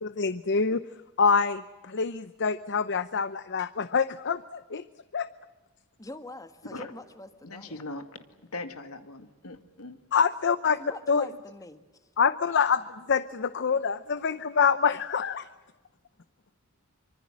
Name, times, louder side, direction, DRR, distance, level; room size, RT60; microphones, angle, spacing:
voice 1, 0.0-0.8 1.2-4.8 5.1-5.3 10.1-10.8 11.1-11.3 12.2-15.5, left 6 dB, 55° left, 13 dB, 0.7 m, -26 dB
voice 2, 6.0-7.9 10.7-12.1, left 1 dB, 15° left, 9 dB, 1.5 m, -44 dB
voice 3, 7.4-8.2 8.5-10.0, left 2 dB, 80° left, 8 dB, 2.2 m, -40 dB
25.5 x 25.5 x 7.5 m, 1.2 s
head